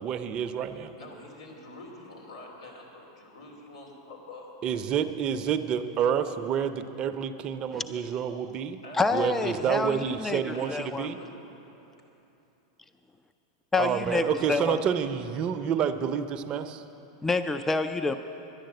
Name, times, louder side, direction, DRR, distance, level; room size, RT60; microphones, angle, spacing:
voice 1, 0.0-0.9 4.6-8.8 9.1-11.2 13.8-16.8, right 8 dB, 35° right, 9 dB, 0.6 m, -29 dB
voice 2, 0.7-4.6 8.8-9.5 10.5-11.6, left 2 dB, 90° left, -1 dB, 3.0 m, -46 dB
voice 3, 8.9-10.4 10.7-11.1 13.7-14.8 17.2-18.2, left 3 dB, 10° left, 9 dB, 0.4 m, -27 dB
11.5 x 10.0 x 7.8 m, 3.0 s
hypercardioid pair, 120°, 3 cm